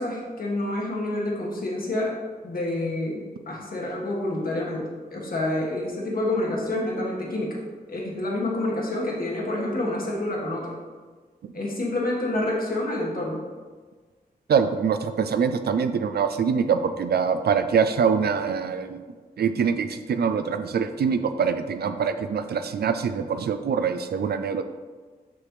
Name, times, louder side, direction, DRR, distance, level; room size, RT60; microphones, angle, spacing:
voice 1, 0.0-2.2 2.4-7.6 7.9-10.7 11.5-13.4, left 1 dB, 65° left, -3 dB, 1.5 m, -28 dB
voice 2, 14.5-19.0 19.4-24.6, right 6 dB, 85° right, 9 dB, 0.4 m, -24 dB
5.9 x 5.9 x 3.2 m, 1.4 s
wide cardioid pair, 90°, 16 cm